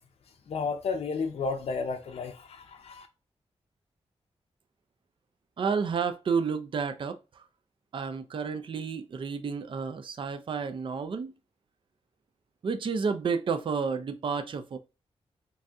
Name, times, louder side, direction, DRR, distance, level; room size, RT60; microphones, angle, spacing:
voice 1, 0.5-3.1, left 4 dB, 70° left, 0.5 m, -32 dB
voice 2, 5.6-7.2 7.9-11.3 12.6-14.8, right 5 dB, 50° right, 0.4 m, -30 dB
3.8 x 2.6 x 2.3 m
wide cardioid pair, 95°, 11 cm